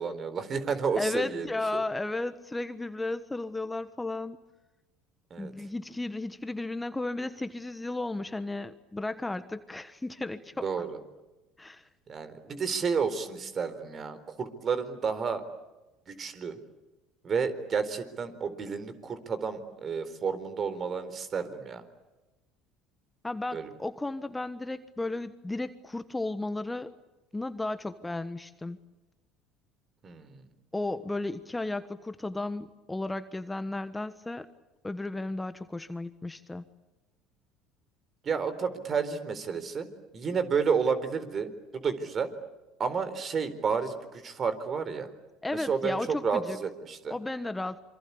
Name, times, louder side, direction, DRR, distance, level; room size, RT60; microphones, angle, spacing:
voice 1, 0.0-1.8 5.3-5.5 10.6-11.0 12.1-15.4 16.1-16.6 17.2-21.8 23.5-23.7 30.0-30.4 38.2-39.9 40.1-42.3 42.8-45.1 45.5-47.1, right 5 dB, 40° right, 12 dB, 4.1 m, -31 dB
voice 2, 1.0-4.4 5.4-10.8 11.6-11.9 23.2-26.9 27.3-28.8 30.7-34.5 34.8-36.6 45.4-46.6 47.1-47.8, left 2 dB, 10° left, 12 dB, 1.3 m, -34 dB
27.0 x 25.0 x 8.5 m, 1.1 s
hypercardioid pair, 70°, 0 cm